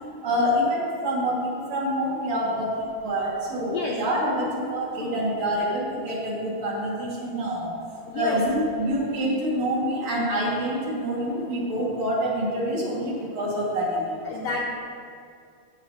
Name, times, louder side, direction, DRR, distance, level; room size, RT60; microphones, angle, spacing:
voice 1, 0.2-7.7 8.1-14.3, equal, 55° right, -6 dB, 2.7 m, -26 dB
voice 2, 8.1-8.9 14.2-14.7, left 4 dB, 80° left, -2 dB, 1.4 m, -31 dB
14.5 x 7.0 x 2.7 m, 2.3 s
omnidirectional pair, 3.9 m